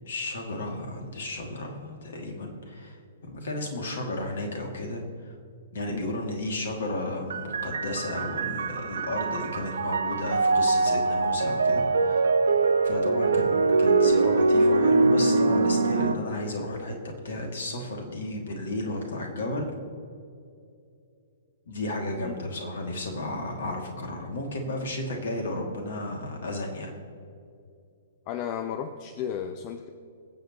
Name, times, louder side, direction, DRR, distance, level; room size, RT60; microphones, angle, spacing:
voice 1, 0.1-3.0 3.2-5.0 5.7-12.2 12.8-16.9 17.2-19.7 21.7-26.9, left 1 dB, 55° left, 2 dB, 2.4 m, -33 dB
sound 1, 7.3-16.1, right 3 dB, 65° right, 0.7 m, -23 dB
voice 2, 28.3-29.9, left 8 dB, 35° left, 9 dB, 0.7 m, -34 dB
24.0 x 8.1 x 3.0 m, 2.5 s
figure-of-eight pair, 115°, 0 cm